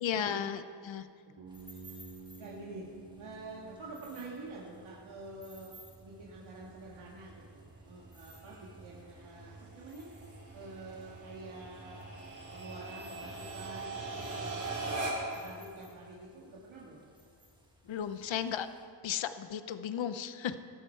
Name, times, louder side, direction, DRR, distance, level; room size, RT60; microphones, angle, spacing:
voice 1, 0.0-1.1 17.9-18.7 19.0-20.6, left 9 dB, 75° left, 11 dB, 0.8 m, -34 dB
Bass guitar, 1.4-5.4, right 4 dB, 65° right, 2.9 m, -52 dB
sound 1, 1.5-18.9, right 1 dB, 10° right, 1.7 m, -58 dB
voice 2, 2.4-2.8 3.2-5.7 6.0-10.2 10.5-12.1 12.5-14.7 15.0-17.0, right 2 dB, 90° right, -5 dB, 2.1 m, -48 dB
sound 2, 5.3-15.5, right 2 dB, 40° right, 3.6 m, -42 dB
15.5 x 12.5 x 4.6 m, 2.3 s
wide cardioid pair, 125°, 46 cm